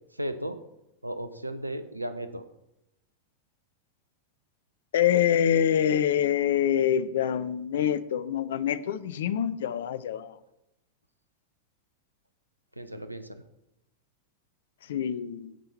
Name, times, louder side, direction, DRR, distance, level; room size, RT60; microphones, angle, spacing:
voice 1, 0.1-0.6 1.0-2.4 12.8-13.4, right 1 dB, 85° right, 11 dB, 0.8 m, -35 dB
voice 2, 4.9-10.3 14.9-15.5, left 9 dB, 60° left, 14 dB, 0.6 m, -25 dB
17.0 x 5.7 x 4.3 m, 0.87 s
figure-of-eight pair, 90°, 0 cm